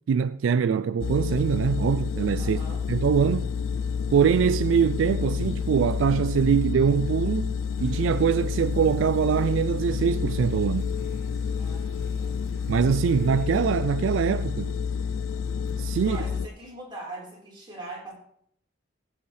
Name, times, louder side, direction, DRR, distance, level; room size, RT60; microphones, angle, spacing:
voice 1, 0.1-2.6 2.9-3.5 4.1-10.9 12.7-14.7 15.8-16.2, right 7 dB, 75° right, 0.3 m, -23 dB
sound 1, 1.0-16.5, left 6 dB, 85° left, 0.4 m, -29 dB
voice 2, 2.4-2.8 11.6-12.4 16.0-18.1, right 2 dB, 25° right, 4.1 m, -41 dB
sound 2, 7.7-14.0, right 2 dB, 55° right, 1.9 m, -56 dB
16.0 x 7.9 x 3.3 m
head